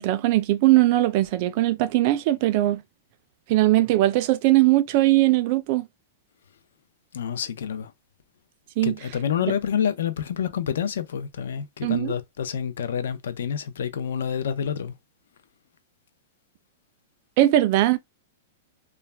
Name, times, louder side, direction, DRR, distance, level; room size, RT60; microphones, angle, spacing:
voice 1, 0.0-2.8 3.5-5.8 8.8-8.9 11.8-12.1 17.4-18.0, right 16 dB, 35° right, 0.3 m, -20 dB
voice 2, 7.1-7.9 8.8-14.9, left 8 dB, 80° left, 0.5 m, -28 dB
2.3 x 2.1 x 3.2 m
supercardioid pair, 170°, 0 cm